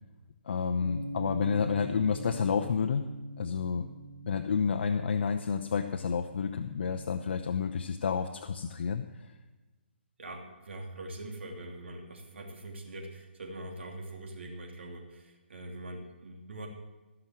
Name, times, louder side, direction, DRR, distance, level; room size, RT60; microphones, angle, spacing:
voice 1, 0.5-3.0 3.4-3.9 4.2-9.1, left 6 dB, 60° left, 5 dB, 0.7 m, -30 dB
Bass guitar, 0.8-7.1, right 1 dB, 20° left, 4.4 m, -43 dB
voice 2, 10.2-16.7, right 1 dB, 70° right, 1 dB, 3.0 m, -43 dB
15.0 x 6.1 x 7.7 m, 1.2 s
hypercardioid pair, 155°, 6 cm